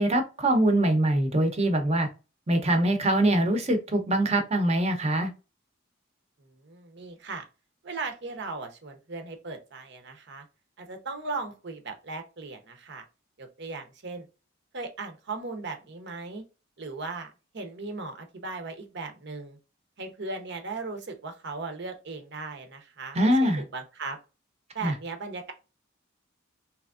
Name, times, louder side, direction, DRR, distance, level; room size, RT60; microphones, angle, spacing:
voice 1, 0.0-2.1 2.5-5.3 23.1-23.6 24.8-24.9, right 1 dB, 35° right, 5 dB, 0.8 m, -23 dB
voice 2, 6.4-7.5 7.8-10.5 10.8-13.0 13.4-14.3 14.7-16.4 16.8-19.6 20.0-24.2 24.7-25.5, right 3 dB, 60° right, 5 dB, 0.8 m, -37 dB
3.5 x 3.1 x 2.4 m, 0.31 s
head